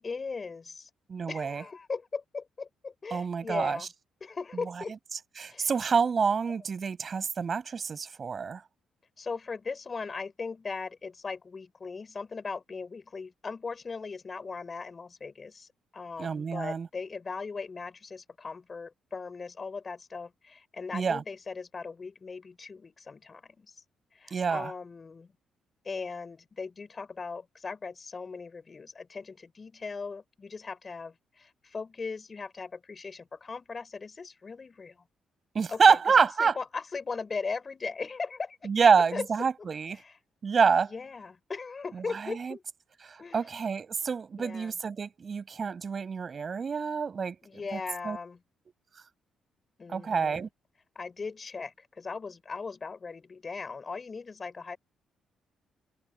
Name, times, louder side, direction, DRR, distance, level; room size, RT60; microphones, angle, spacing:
voice 1, 0.0-0.9 1.3-3.9 4.2-5.0 5.5-5.7 6.4-6.6 9.2-23.7 24.1-25.3 25.8-35.0 35.7-39.3 39.6-39.7 39.9-40.2 40.9-42.6 43.2-43.5 44.4-44.7 47.4-48.4 49.8-50.5 50.9-54.8, left 4 dB, 35° left, 6.3 m, -39 dB
voice 2, 1.1-1.6 3.1-3.8 5.4-8.6 16.2-16.9 20.9-21.2 24.3-24.7 35.5-36.6 38.6-40.0 40.4-40.9 41.9-42.6 43.1-47.4 47.7-47.8 48.0-48.2 49.9-50.5, right 5 dB, 40° right, 7.0 m, -27 dB
cardioid pair, 90°, 0 cm